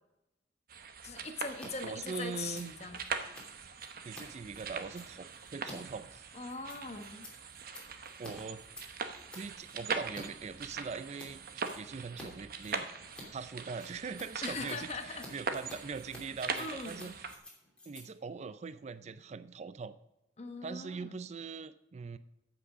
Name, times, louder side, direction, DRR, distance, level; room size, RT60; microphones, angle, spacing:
sound 1, 0.7-17.4, right 5 dB, 55° right, 0.9 m, -42 dB
voice 1, 1.0-3.0 6.3-7.3 14.4-15.3 16.6-17.1 20.4-21.2, left 4 dB, 40° left, 6 dB, 1.1 m, -41 dB
Scissors, 1.5-1.7 1.9-10.2 10.6-11.3 11.6-12.3 12.5-19.3, left 1 dB, 5° left, 2.8 m, -52 dB
voice 2, 1.8-2.7 4.0-6.3 8.2-8.6 9.3-12.9 13.3-17.1 17.9-19.9 20.6-22.2, right 5 dB, 40° right, 14 dB, 0.4 m, -42 dB
14.0 x 5.9 x 4.9 m, 0.91 s
head